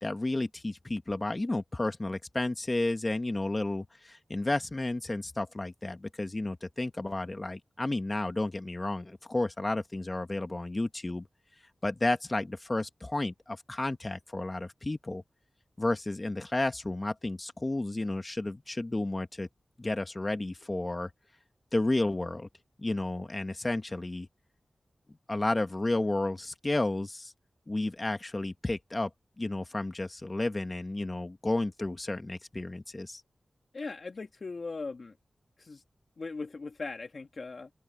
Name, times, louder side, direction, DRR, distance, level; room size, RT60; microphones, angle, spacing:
voice 1, 0.0-11.2 11.8-15.2 15.8-19.5 19.8-21.1 21.7-22.5 22.8-24.3 25.3-27.3 27.7-29.1 29.4-33.2, left 2 dB, 30° left, 1.4 m, -32 dB
voice 2, 33.7-35.2 35.6-35.8 36.2-37.7, left 3 dB, 60° left, 1.5 m, -39 dB
open air
wide cardioid pair, 80°, 0 cm